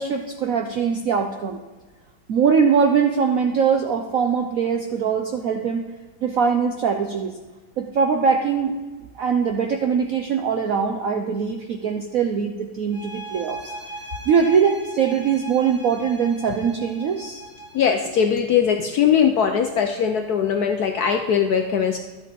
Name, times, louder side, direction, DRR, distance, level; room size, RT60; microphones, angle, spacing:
voice 1, 0.0-1.6 2.3-5.9 6.2-7.3 7.8-8.7 9.2-13.6 14.3-17.4, right 6 dB, 70° right, 4 dB, 0.8 m, -22 dB
sound 1, 12.9-18.2, right 2 dB, 20° right, 0.3 m, -38 dB
voice 2, 17.7-22.0, left 7 dB, 70° left, 5 dB, 0.9 m, -20 dB
12.0 x 8.1 x 4.2 m, 1.3 s
omnidirectional pair, 2.2 m